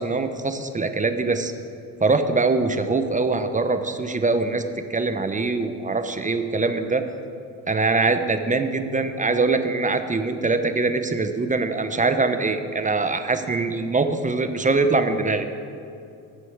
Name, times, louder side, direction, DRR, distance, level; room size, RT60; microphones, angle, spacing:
voice 1, 0.0-1.5 2.0-7.1 7.7-15.5, right 3 dB, 20° right, 8 dB, 0.8 m, -23 dB
11.0 x 5.4 x 7.9 m, 2.5 s
supercardioid pair, 75°, 39 cm